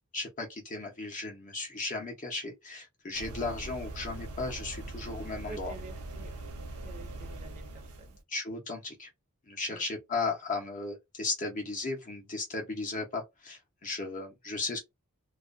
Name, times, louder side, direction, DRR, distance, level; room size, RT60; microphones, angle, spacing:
voice 1, 0.1-5.7 8.3-9.1 9.5-14.8, left 3 dB, 35° left, 0.6 m, -35 dB
sound 1, 3.1-8.2, right 2 dB, 85° right, 0.7 m, -41 dB
voice 2, 5.4-6.3 6.8-8.2 9.7-9.8, right 3 dB, 35° right, 0.6 m, -48 dB
2.3 x 2.1 x 2.4 m
head